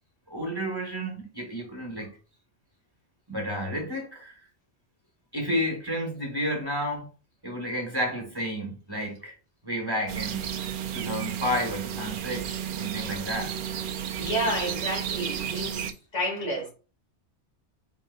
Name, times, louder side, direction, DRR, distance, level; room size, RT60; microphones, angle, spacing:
voice 1, 0.3-2.1 3.3-4.3 5.3-7.1 7.4-9.3 9.6-10.5 10.9-13.6, equal, 20° right, 1.2 m, -31 dB
sound 1, 10.1-15.9, right 9 dB, 60° right, 0.6 m, -32 dB
voice 2, 14.2-15.9 16.1-16.7, equal, 90° left, 2.4 m, -30 dB
4.4 x 3.7 x 2.3 m
omnidirectional pair, 1.1 m